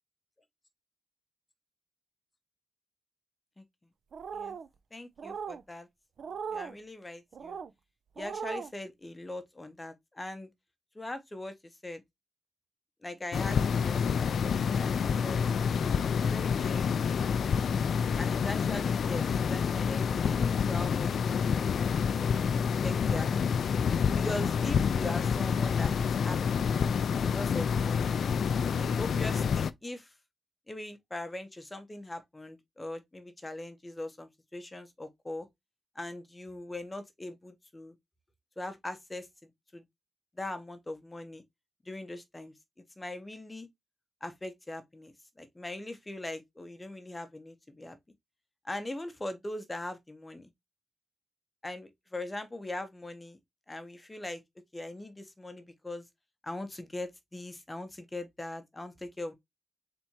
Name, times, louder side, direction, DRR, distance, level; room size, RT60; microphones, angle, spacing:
sound 1, 4.1-4.7 5.2-5.6 6.2-6.7 7.3-7.7 8.2-8.7, right 6 dB, 70° right, 0.3 m, -38 dB
voice 1, 4.9-5.9 6.5-7.6 8.2-10.5 10.9-11.5 11.8-12.0 13.0-15.9 16.2-17.2 18.1-21.6 22.1-22.3 22.6-23.6 24.1-26.4 27.2-28.1 28.8-30.1 30.7-35.5 35.9-37.9 38.6-39.3 39.7-39.8 40.4-41.4 41.8-42.5 43.0-43.7 44.2-45.1 45.4-48.0 48.6-50.5 51.6-53.4 53.7-54.4 54.7-56.1 56.4-59.3, left 1 dB, 20° left, 0.7 m, -41 dB
sound 2, 13.3-29.7, left 6 dB, 75° left, 0.3 m, -28 dB
4.3 x 3.4 x 2.8 m
wide cardioid pair, 100°, 0 cm